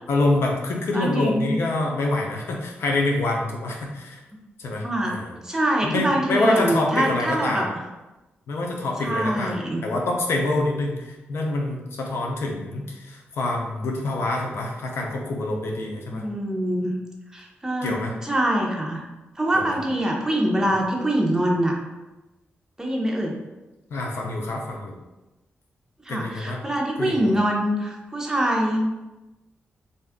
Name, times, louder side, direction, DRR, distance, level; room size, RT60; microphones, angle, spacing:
voice 1, 0.1-4.2 4.6-5.4 5.8-7.7 8.5-9.6 9.8-16.2 17.8-18.1 19.5-19.6 23.9-25.0 26.1-26.6 27.0-27.4, left 2 dB, 80° left, 0 dB, 0.6 m, -26 dB
voice 2, 0.9-1.5 4.8-5.1 5.4-7.7 9.0-9.8 16.1-16.9 17.3-19.0 19.4-21.7 22.8-23.3 26.1-29.1, right 1 dB, 15° right, -1 dB, 0.7 m, -24 dB
2.6 x 2.3 x 3.5 m, 1.1 s
cardioid pair, 80°, 4 cm